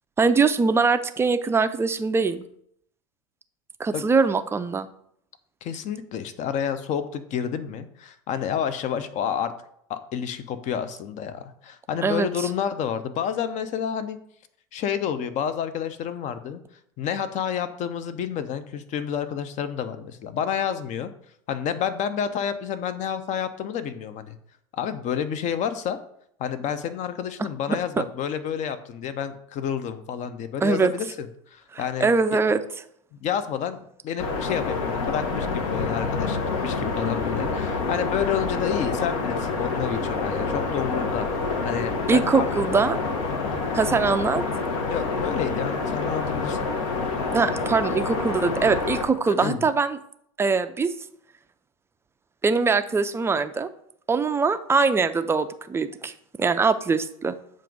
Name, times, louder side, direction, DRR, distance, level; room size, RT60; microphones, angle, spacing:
voice 1, 0.2-2.5 3.8-4.9 12.0-12.5 27.7-28.0 30.6-30.9 31.7-32.6 42.1-43.0 43.7-44.4 47.3-50.0 50.4-50.9 52.4-53.7 54.1-56.1 56.4-57.4, right 4 dB, 15° right, 10 dB, 0.4 m, -22 dB
voice 2, 5.6-9.5 9.9-14.2 14.7-16.6 17.0-21.1 21.5-24.4 24.7-26.0 26.4-32.4 33.1-41.3 41.6-42.5 44.9-46.6 49.3-49.6, left 8 dB, 40° left, 12 dB, 0.7 m, -29 dB
sound 1, 34.2-49.0, left 4 dB, 70° left, 1.1 m, -27 dB
7.3 x 2.6 x 5.3 m, 0.70 s
hypercardioid pair, 95°, 18 cm